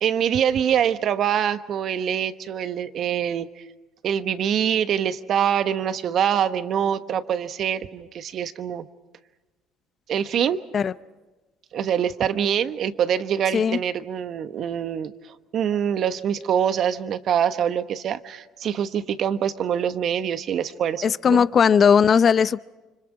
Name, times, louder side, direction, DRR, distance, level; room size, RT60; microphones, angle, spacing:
voice 1, 0.0-3.6 4.0-8.9 10.1-10.6 11.7-21.4, right 9 dB, 55° right, 11 dB, 1.1 m, -24 dB
voice 2, 21.0-22.6, left 7 dB, 45° left, 17 dB, 0.6 m, -18 dB
30.0 x 25.5 x 4.9 m, 1.2 s
supercardioid pair, 70°, 0 cm